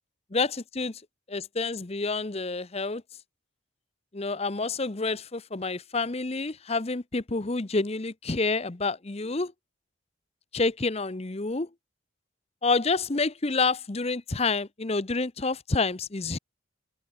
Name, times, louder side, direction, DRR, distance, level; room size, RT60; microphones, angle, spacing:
voice 1, 0.3-0.9 1.3-3.0 4.1-9.5 10.5-11.7 12.6-16.4, left 3 dB, 30° left, 0.8 m, -28 dB
head